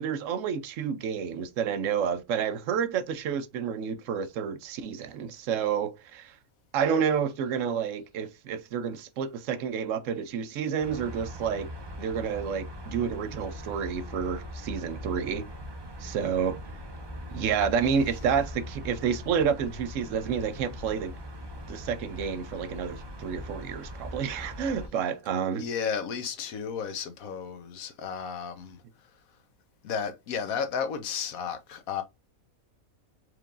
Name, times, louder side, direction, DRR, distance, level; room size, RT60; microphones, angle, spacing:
voice 1, 0.0-6.3 6.7-11.7 12.0-15.4 16.0-16.6 17.3-21.1 21.7-25.6, right 7 dB, 70° right, 0.9 m, -29 dB
sound 1, 10.8-24.9, equal, 35° right, 0.4 m, -41 dB
voice 2, 25.5-28.8 29.8-32.0, left 6 dB, 80° left, 1.2 m, -33 dB
4.5 x 3.4 x 2.4 m
omnidirectional pair, 1.5 m